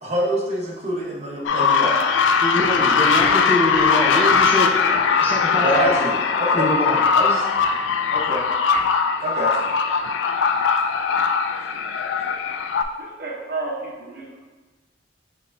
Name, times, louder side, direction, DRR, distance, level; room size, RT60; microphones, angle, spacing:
voice 1, 0.0-2.0 5.6-6.6 7.1-7.4 8.1-8.4 9.2-9.5, right 1 dB, 35° right, -5 dB, 1.0 m, -25 dB
sound 1, 1.5-12.8, left 5 dB, 90° left, 0.3 m, -20 dB
voice 2, 2.4-6.1 6.5-7.0, left 1 dB, 10° left, -3 dB, 0.5 m, -24 dB
voice 3, 13.0-14.4, right 3 dB, 55° right, -2 dB, 0.7 m, -31 dB
5.7 x 3.3 x 2.6 m, 1.2 s
head